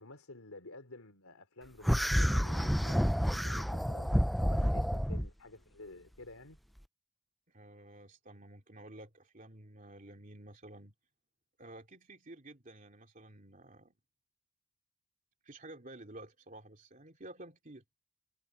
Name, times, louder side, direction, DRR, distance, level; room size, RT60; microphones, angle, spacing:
voice 1, 0.0-4.1 4.4-6.6, left 2 dB, 85° left, 3.5 m, -51 dB
sound 1, 1.8-5.3, equal, ahead, 0.4 m, -29 dB
voice 2, 7.5-10.9 11.6-13.9 15.4-17.8, right 1 dB, 40° right, 2.9 m, -51 dB
head